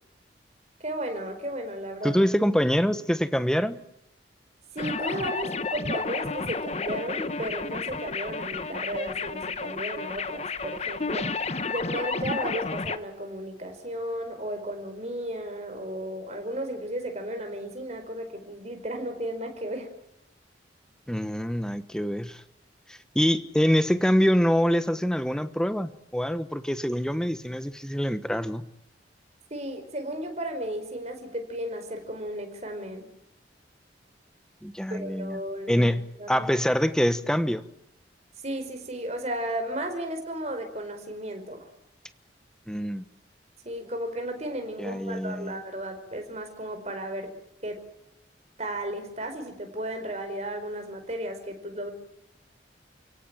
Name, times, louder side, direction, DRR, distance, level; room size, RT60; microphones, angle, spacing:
voice 1, 0.8-2.2 4.7-11.3 11.7-19.9 29.5-33.0 34.9-35.9 36.2-36.5 38.4-41.7 43.6-47.3 47.6-47.8 48.6-51.9, right 1 dB, 35° right, 5 dB, 4.9 m, -34 dB
voice 2, 2.0-3.8 21.1-22.4 22.9-28.6 34.6-35.4 35.7-37.6 42.7-43.0 44.8-45.6, equal, 5° left, 12 dB, 1.1 m, -25 dB
sound 1, 4.8-13.0, left 4 dB, 35° left, 1.1 m, -31 dB
29.5 x 17.0 x 9.0 m, 0.84 s
head